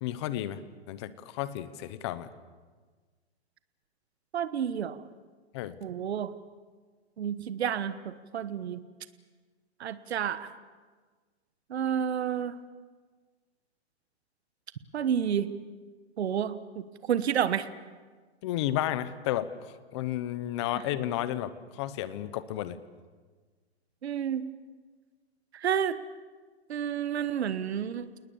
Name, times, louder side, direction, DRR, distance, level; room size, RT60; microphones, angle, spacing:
voice 1, 0.0-0.6 0.9-2.3 5.5-5.8 18.4-19.5 19.9-22.8, left 13 dB, 25° left, 15 dB, 0.8 m, -32 dB
voice 2, 4.3-5.0 5.8-6.3 7.2-8.8 9.8-10.5 11.7-12.6 14.9-15.5 16.2-17.7 24.0-24.5 25.5-26.0 26.7-28.1, right 8 dB, 75° right, 13 dB, 1.3 m, -30 dB
28.5 x 20.0 x 7.1 m, 1.4 s
hypercardioid pair, 165°, 32 cm